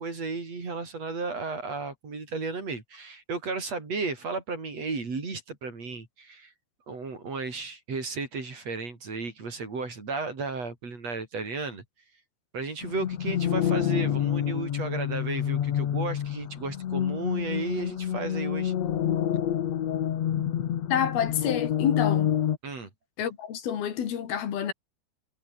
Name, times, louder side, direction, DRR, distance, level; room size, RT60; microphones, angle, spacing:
voice 1, 0.0-6.5 6.9-11.8 12.5-18.7 19.3-19.4 22.6-22.9, right 4 dB, 45° right, 5.7 m, -34 dB
sound 1, 12.8-22.6, left 10 dB, 55° left, 2.3 m, -28 dB
voice 2, 20.9-22.3 23.2-24.7, left 9 dB, 80° left, 4.4 m, -28 dB
omnidirectional pair, 4.3 m